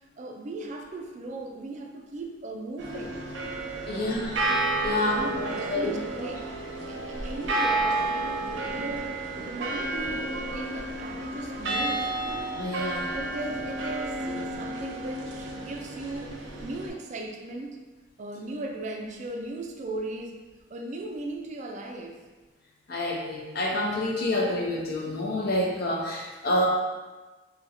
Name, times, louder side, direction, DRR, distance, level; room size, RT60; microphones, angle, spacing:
voice 1, 0.2-3.2 3.9-4.2 4.9-6.5 6.9-12.1 12.9-16.3 16.6-17.8 18.2-20.4 20.7-22.2, right 2 dB, 40° right, 2 dB, 0.4 m, -37 dB
sound 1, 2.8-16.9, right 2 dB, 85° right, 0.6 m, -31 dB
voice 2, 3.9-4.3 4.8-6.3 12.6-13.1 22.9-26.7, left 1 dB, 55° left, 0 dB, 0.6 m, -28 dB
2.8 x 2.6 x 4.1 m, 1.2 s
head